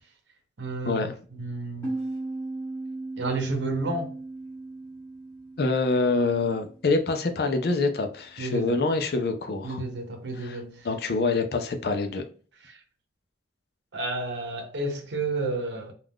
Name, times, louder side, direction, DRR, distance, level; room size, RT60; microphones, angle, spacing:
voice 1, 0.6-1.9 3.2-4.1 8.4-8.8 9.6-10.9 12.7-12.8 13.9-15.9, right 2 dB, 85° right, 0.8 m, -31 dB
sound 1, 1.8-7.2, right 2 dB, 15° left, 1.4 m, -37 dB
voice 2, 5.6-9.8 10.4-10.6 10.8-12.2, left 3 dB, 60° left, 0.5 m, -26 dB
3.5 x 2.4 x 2.2 m
head